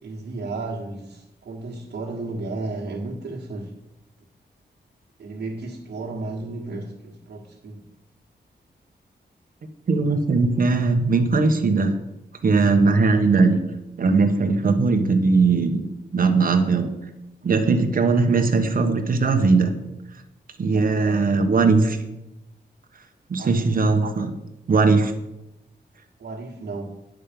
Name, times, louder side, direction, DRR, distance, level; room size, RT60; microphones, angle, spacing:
voice 1, 0.0-3.7 5.2-7.8 20.7-21.2 23.4-23.7 26.2-26.9, right 3 dB, 70° right, -6 dB, 1.7 m, -33 dB
voice 2, 9.9-11.9 12.4-13.6 14.0-15.8 16.1-16.9 17.4-19.7 20.6-22.0 23.3-24.3 24.7-25.1, right 4 dB, 50° right, 5 dB, 1.2 m, -19 dB
10.5 x 6.5 x 5.3 m, 0.89 s
wide cardioid pair, 135°, 18 cm